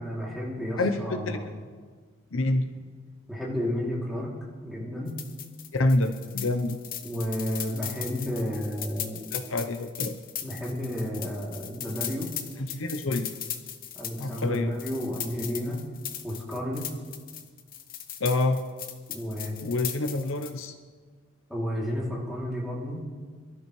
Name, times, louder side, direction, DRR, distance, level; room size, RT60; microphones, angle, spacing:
voice 1, 0.0-1.5 2.5-2.6 3.3-4.3 4.6-5.2 7.0-9.2 10.4-12.3 14.0-15.8 16.2-16.9 19.1-19.6 21.5-23.0, equal, ahead, -5 dB, 2.9 m, -32 dB
voice 2, 0.8-1.4 2.3-2.7 5.7-6.8 9.3-10.1 12.6-13.3 14.2-14.7 18.2-18.6 19.6-20.7, left 2 dB, 85° left, 8 dB, 0.8 m, -27 dB
sound 1, 5.1-20.6, left 10 dB, 45° left, 0.9 m, -38 dB
23.0 x 12.5 x 3.2 m, 1.5 s
head